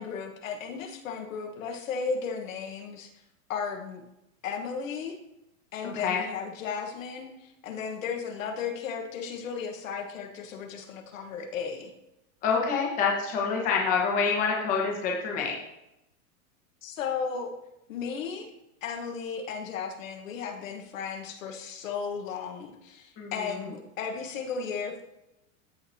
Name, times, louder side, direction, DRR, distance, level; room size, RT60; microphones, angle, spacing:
voice 1, 0.0-3.1 3.5-4.0 4.4-5.2 5.7-11.9 16.8-17.5 17.9-18.5 18.8-25.0, left 6 dB, 65° left, 4 dB, 1.4 m, -35 dB
voice 2, 12.4-15.5 23.2-23.3, left 5 dB, 20° left, -2 dB, 1.1 m, -26 dB
14.0 x 4.8 x 2.8 m, 0.88 s
supercardioid pair, 170°, 43 cm